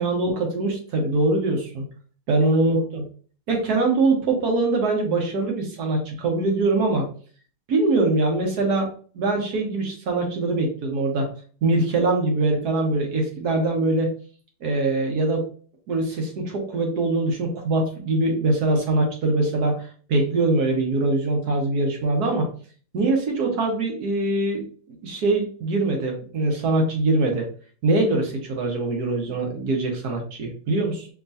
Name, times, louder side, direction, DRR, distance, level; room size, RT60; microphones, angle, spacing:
voice 1, 0.0-1.8 2.3-3.0 3.5-7.1 7.7-8.9 9.1-11.3 11.6-14.1 14.6-15.4 15.9-22.5 22.9-24.6 25.0-27.5 27.8-31.1, right 2 dB, 60° right, 2 dB, 1.4 m, -23 dB
4.8 x 3.0 x 2.6 m, 0.43 s
omnidirectional pair, 2.1 m